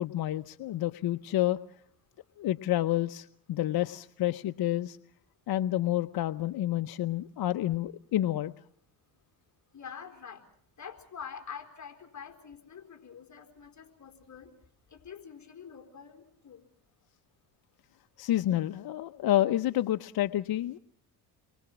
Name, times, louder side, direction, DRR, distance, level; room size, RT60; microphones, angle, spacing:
voice 1, 0.0-1.6 2.4-5.0 5.5-8.5 18.2-20.8, left 13 dB, 55° left, 10 dB, 0.9 m, -29 dB
voice 2, 9.7-10.4 10.8-14.5 14.9-16.6, left 7 dB, 40° left, 6 dB, 4.2 m, -46 dB
30.0 x 23.0 x 6.1 m, 0.64 s
supercardioid pair, 85°, 44 cm